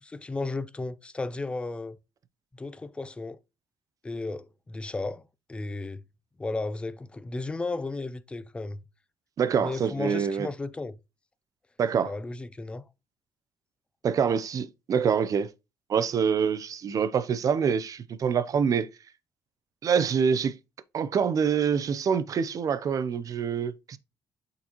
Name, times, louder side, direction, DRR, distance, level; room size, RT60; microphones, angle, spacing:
voice 1, 0.0-2.0 2.5-3.4 4.0-5.2 5.5-6.0 6.4-8.8 9.6-11.0 12.0-12.8, left 3 dB, 10° left, 0.4 m, -34 dB
voice 2, 9.4-10.5 11.8-12.1 14.0-15.5 15.9-18.9 19.8-20.6 20.9-24.0, right 7 dB, 40° right, 0.5 m, -25 dB
8.4 x 3.9 x 2.9 m
cardioid pair, 135°, 9 cm